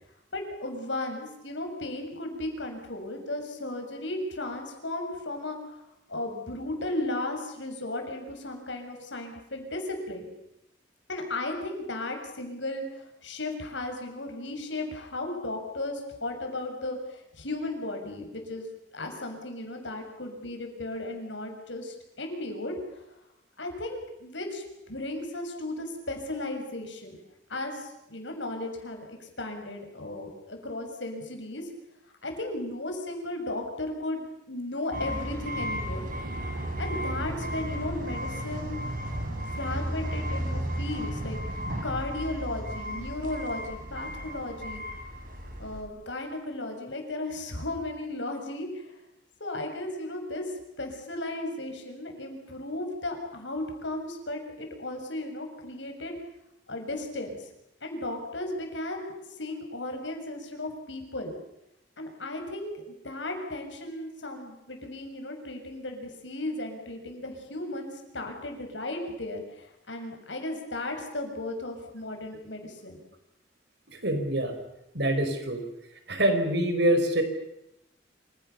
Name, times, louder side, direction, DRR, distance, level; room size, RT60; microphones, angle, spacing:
voice 1, 0.3-5.8 6.1-10.3 11.1-18.7 18.9-22.7 23.6-27.2 27.5-31.7 32.2-36.1 36.8-38.8 39.3-44.8 45.6-49.0 49.4-56.1 56.7-57.5 57.8-59.1 59.4-61.3 62.0-73.0, left 2 dB, 75° left, 4 dB, 6.9 m, -35 dB
sound 1, 34.9-45.8, equal, 45° right, 6.7 m, -34 dB
voice 2, 74.0-74.6 74.9-75.6 76.1-77.2, right 1 dB, 65° right, 7 dB, 5.0 m, -25 dB
27.5 x 27.5 x 7.0 m, 0.86 s
head